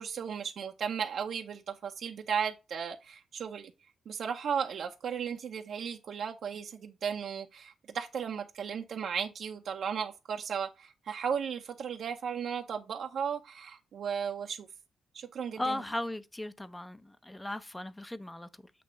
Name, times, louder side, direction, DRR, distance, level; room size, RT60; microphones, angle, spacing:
voice 1, 0.0-3.7 4.1-14.7 15.1-15.8, right 7 dB, 65° right, 0.7 m, -35 dB
voice 2, 15.6-18.7, left 1 dB, 10° left, 0.6 m, -37 dB
8.5 x 2.9 x 5.0 m
cardioid pair, 110°, 0 cm